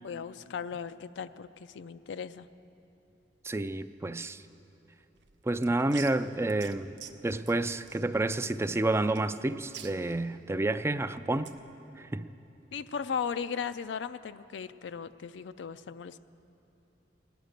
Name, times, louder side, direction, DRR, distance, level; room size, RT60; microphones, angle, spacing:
voice 1, 0.0-1.5 1.7-2.5 12.7-16.2, left 6 dB, 80° left, 12 dB, 0.4 m, -37 dB
voice 2, 3.4-4.4 5.4-6.9 7.2-11.5 12.0-12.3, right 2 dB, 15° right, 12 dB, 0.3 m, -29 dB
sound 1, 5.2-11.7, right 9 dB, 80° right, 0.7 m, -50 dB
17.5 x 10.5 x 6.6 m, 3.0 s
head